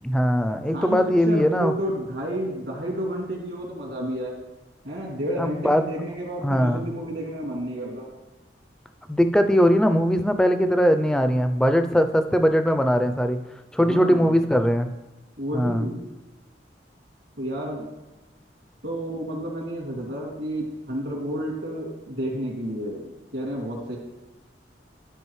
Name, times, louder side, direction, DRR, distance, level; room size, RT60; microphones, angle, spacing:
voice 1, 0.0-1.7 5.4-5.8 6.4-6.8 9.1-13.4 13.7-14.9 15.5-15.9, equal, 5° left, 8 dB, 0.4 m, -20 dB
voice 2, 0.7-4.3 4.8-8.1 13.8-14.3 15.4-16.0 17.4-17.9 18.8-24.0, equal, 70° right, -2 dB, 2.4 m, -31 dB
12.5 x 4.8 x 3.2 m, 1.1 s
head